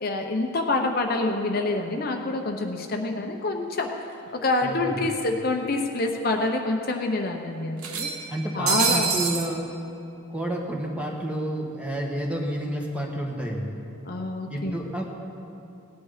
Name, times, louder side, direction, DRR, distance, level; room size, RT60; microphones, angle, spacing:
voice 1, 0.0-3.9 4.3-8.1 8.5-9.2 14.0-14.8, left 2 dB, 45° left, 3 dB, 0.8 m, -27 dB
sound 1, 4.4-4.5 4.8-4.9 5.9-6.0 6.4-6.5 7.8-9.5, right 6 dB, 90° right, 1.1 m, -26 dB
voice 2, 4.6-5.1 8.3-9.7 10.3-13.8 14.5-15.0, right 1 dB, 5° right, 0 dB, 1.4 m, -30 dB
18.0 x 10.0 x 5.0 m, 2.8 s
head